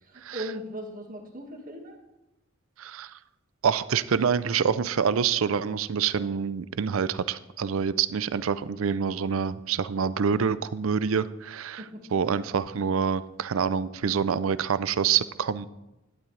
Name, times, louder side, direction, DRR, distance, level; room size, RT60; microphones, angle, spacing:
voice 1, 0.1-2.0 11.8-12.0, equal, 45° right, 2 dB, 1.8 m, -38 dB
voice 2, 2.8-3.1 3.6-11.8 12.1-15.7, right 6 dB, 85° right, 16 dB, 0.5 m, -26 dB
12.5 x 11.0 x 3.3 m, 0.97 s
head